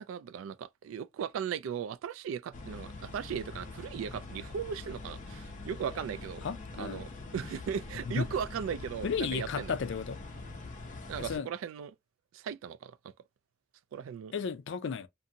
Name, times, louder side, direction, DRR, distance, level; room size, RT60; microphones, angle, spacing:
voice 1, 0.0-6.4 6.8-9.7 11.1-11.9 12.3-13.1 13.9-14.3, right 7 dB, 85° right, 0.3 m, -37 dB
sound 1, 2.5-11.4, left 3 dB, 40° left, 0.7 m, -44 dB
voice 2, 6.4-7.0 8.1-8.3 9.0-10.2 11.2-11.5 14.3-15.1, left 6 dB, 65° left, 0.4 m, -33 dB
2.6 x 2.6 x 2.7 m
head